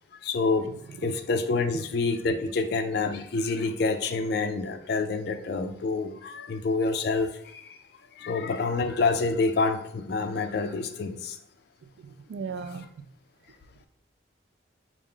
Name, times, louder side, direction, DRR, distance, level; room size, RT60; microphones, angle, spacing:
voice 1, 0.2-7.8 8.2-11.4, left 3 dB, 55° left, 8 dB, 0.3 m, -27 dB
voice 2, 11.8-13.0, right 5 dB, 70° right, 9 dB, 0.3 m, -38 dB
4.4 x 2.0 x 3.6 m, 0.69 s
head